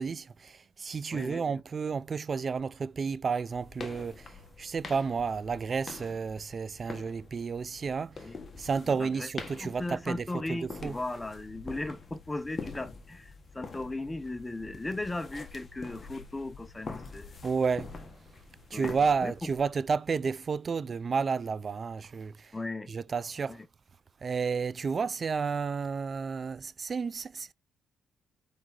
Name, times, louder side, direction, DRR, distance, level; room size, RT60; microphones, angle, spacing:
voice 1, 0.0-8.3 8.6-10.9 17.4-17.9 18.7-22.6 22.9-23.6 24.2-27.5, right 5 dB, 40° right, 0.3 m, -31 dB
voice 2, 1.1-1.6 8.2-8.4 8.9-9.3 9.6-17.4 18.7-18.9 19.2-19.5 22.5-22.9 23.5-23.7, left 2 dB, 15° left, 0.7 m, -37 dB
sound 1, 3.5-19.7, left 4 dB, 35° left, 1.4 m, -45 dB
5.0 x 4.8 x 3.9 m
cardioid pair, 90°, 0 cm